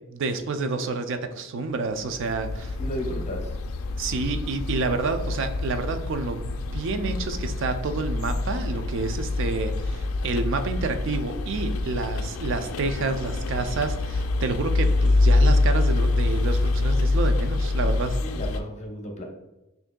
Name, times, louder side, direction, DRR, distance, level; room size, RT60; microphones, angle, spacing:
voice 1, 0.1-2.8 4.0-18.2, right 3 dB, 65° right, 8 dB, 0.4 m, -29 dB
sound 1, 2.0-18.6, left 2 dB, 80° left, 0.3 m, -25 dB
voice 2, 2.8-3.5 15.0-15.1 18.2-19.2, equal, 35° left, 1 dB, 0.7 m, -34 dB
6.0 x 2.6 x 2.2 m, 1.0 s
head